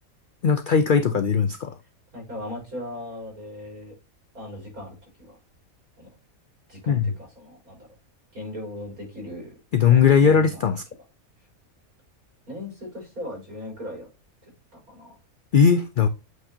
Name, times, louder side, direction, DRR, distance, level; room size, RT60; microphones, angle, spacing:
voice 1, 0.4-1.7 6.9-7.1 9.7-10.8 15.5-16.1, left 6 dB, 70° left, 9 dB, 0.4 m, -18 dB
voice 2, 2.1-3.9 4.3-5.4 6.0-6.1 6.7-7.9 8.3-9.5 9.8-10.7 12.5-14.1 14.7-15.2, left 1 dB, 85° right, -2 dB, 5.1 m, -38 dB
8.0 x 4.7 x 2.8 m, 0.29 s
omnidirectional pair, 1.5 m